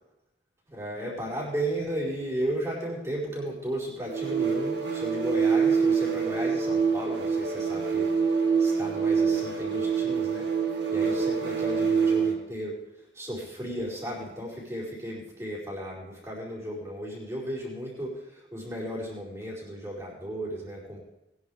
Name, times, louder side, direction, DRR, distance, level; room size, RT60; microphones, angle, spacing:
voice 1, 0.7-8.3 8.6-10.5 10.9-12.8 13.1-21.0, right 1 dB, 15° right, -5 dB, 4.9 m, -34 dB
sound 1, 4.0-12.4, right 6 dB, 70° right, 2.4 m, -25 dB
20.5 x 11.0 x 3.5 m, 0.91 s
head